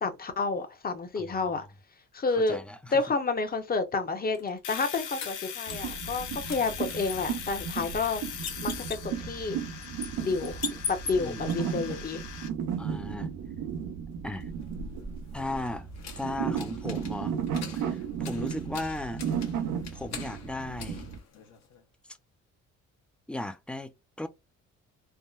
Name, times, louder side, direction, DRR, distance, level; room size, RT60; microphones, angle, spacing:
voice 1, 0.0-1.6 2.1-2.6 2.9-8.2 8.6-8.7 9.0-9.6 10.2-10.6 10.9-12.2, left 4 dB, 30° left, 0.8 m, -29 dB
voice 2, 1.2-1.7 2.3-3.0 5.7-5.9 10.7-10.8 11.1-11.5 11.9-12.0 12.8-13.3 14.2-14.5 15.3-15.9 16.2-17.3 17.7-19.2 19.9-21.1 23.3-23.9 24.2-24.3, left 2 dB, 5° left, 0.4 m, -36 dB
sound 1, 4.3-6.2 6.5-11.5 14.3-21.8, left 6 dB, 60° left, 1.0 m, -42 dB
Domestic sounds home sounds, 4.6-12.5, left 9 dB, 80° left, 0.7 m, -41 dB
sound 2, 5.7-21.2, right 8 dB, 85° right, 0.7 m, -35 dB
3.5 x 2.1 x 2.5 m
cardioid pair, 90°, 30 cm